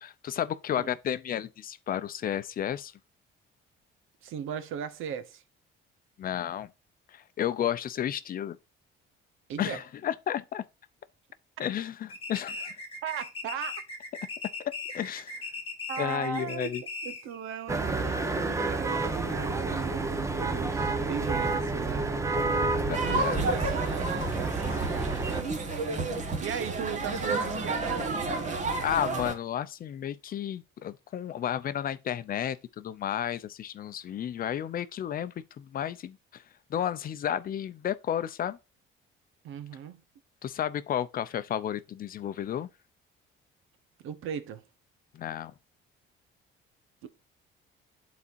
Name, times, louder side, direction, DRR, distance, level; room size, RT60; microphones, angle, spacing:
voice 1, 0.0-2.9 6.2-6.7 7.1-8.6 9.6-10.6 11.6-12.7 14.6-15.3 16.0-16.8 22.9-23.4 28.8-36.4 36.7-38.6 40.4-42.7 45.1-45.5, left 10 dB, 45° left, 0.6 m, -32 dB
voice 2, 4.2-5.4 9.5-9.8 13.0-13.8 15.9-16.8 17.0-22.3 23.0-25.9 26.4-28.7 39.4-40.0 44.0-44.6 47.0-47.1, right 8 dB, 75° right, 1.0 m, -38 dB
sound 1, 12.1-17.4, left 3 dB, 25° left, 1.3 m, -39 dB
sound 2, 17.7-25.4, right 3 dB, 15° right, 0.8 m, -29 dB
sound 3, 22.9-29.3, right 3 dB, 35° right, 1.5 m, -31 dB
11.0 x 4.2 x 2.6 m
cardioid pair, 140°, 21 cm